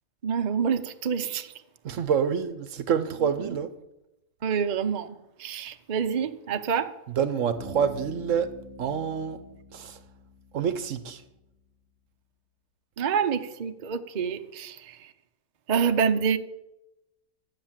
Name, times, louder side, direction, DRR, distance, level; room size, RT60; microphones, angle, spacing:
voice 1, 0.2-1.5 4.4-6.9 13.0-15.1 15.7-16.4, right 6 dB, 40° right, 0.7 m, -27 dB
voice 2, 1.8-3.7 7.2-9.4 9.7-10.0 10.5-11.2, right 7 dB, 65° right, 1.1 m, -27 dB
Bass guitar, 7.5-11.3, right 1 dB, 40° left, 5.5 m, -46 dB
12.0 x 8.7 x 7.4 m
omnidirectional pair, 1.5 m